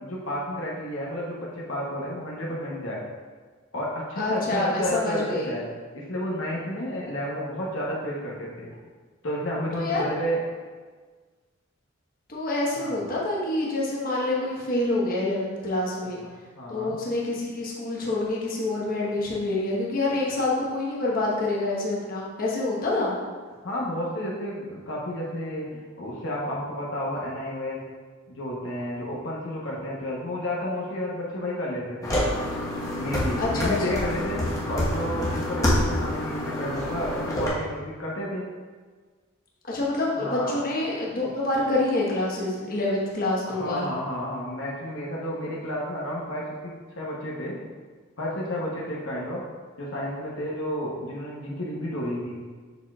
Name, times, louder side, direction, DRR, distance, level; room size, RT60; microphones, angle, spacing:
voice 1, 0.0-3.0 3.7-5.7 5.9-8.8 9.2-10.4 12.7-13.0 16.5-17.0 23.6-27.8 28.3-32.2 32.9-38.5 40.2-40.5 43.5-47.6 48.2-49.4 49.8-52.4, equal, 75° left, -5 dB, 1.0 m, -31 dB
voice 2, 4.2-5.5 9.7-10.0 12.3-16.2 16.7-23.2 33.4-34.1 39.7-43.9, left 2 dB, 45° left, -5 dB, 1.2 m, -27 dB
sound 1, 32.0-37.5, left 1 dB, 15° left, 1.2 m, -27 dB
7.1 x 5.9 x 2.4 m, 1.5 s
head